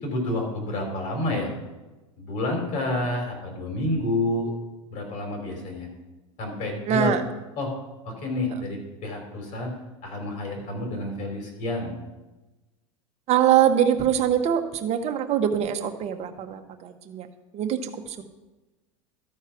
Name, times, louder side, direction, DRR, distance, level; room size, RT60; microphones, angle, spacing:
voice 1, 0.0-1.5 2.2-4.5 4.9-5.9 6.4-7.2 7.6-7.7 8.0-9.7 10.0-11.9, left 2 dB, 50° left, 2 dB, 3.4 m, -29 dB
voice 2, 6.9-7.2 13.3-17.3 17.5-18.2, right 9 dB, 40° right, 6 dB, 1.0 m, -23 dB
13.0 x 4.6 x 5.8 m, 1.1 s
hypercardioid pair, 95°, 17 cm